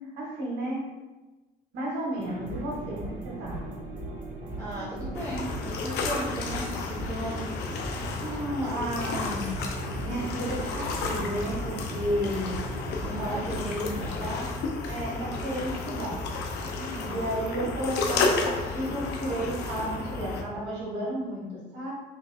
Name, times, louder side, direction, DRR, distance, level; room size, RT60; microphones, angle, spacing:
voice 1, 0.1-0.8 1.7-3.7 8.2-9.5 10.0-12.6 13.0-14.5 14.9-16.2 17.0-21.9, right 1 dB, 85° right, -4 dB, 1.5 m, -32 dB
sound 1, 2.1-14.5, right 1 dB, 55° right, 0.9 m, -39 dB
voice 2, 4.6-7.5 13.2-14.2 16.7-17.3, right 1 dB, 20° right, -8 dB, 0.9 m, -37 dB
sound 2, 5.1-20.4, left 3 dB, 85° left, 0.6 m, -32 dB
4.5 x 3.0 x 2.7 m, 1.2 s
cardioid pair, 110°, 17 cm